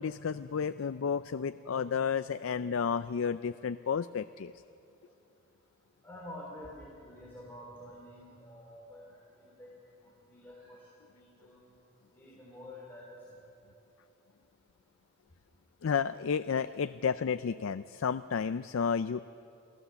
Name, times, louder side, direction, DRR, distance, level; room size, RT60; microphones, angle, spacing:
voice 1, 0.0-4.5 15.8-19.2, left 6 dB, 85° left, 12 dB, 0.4 m, -32 dB
voice 2, 6.0-9.2 9.4-9.7 10.0-11.6 12.1-13.2 16.5-16.6, left 1 dB, 10° left, -5 dB, 3.7 m, -49 dB
28.0 x 17.0 x 7.0 m, 2.9 s
head